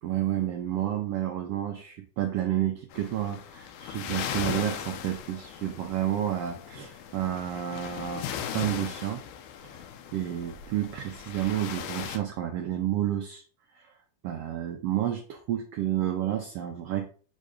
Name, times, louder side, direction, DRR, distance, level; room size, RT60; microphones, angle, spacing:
voice 1, 0.0-9.2 9.6-9.8 10.1-13.4 13.7-13.9 14.2-17.1, right 12 dB, 85° right, 3 dB, 1.3 m, -30 dB
sound 1, 2.9-12.2, left 8 dB, 90° left, 2.2 m, -38 dB
7.4 x 2.6 x 4.9 m, 0.41 s
omnidirectional pair, 3.5 m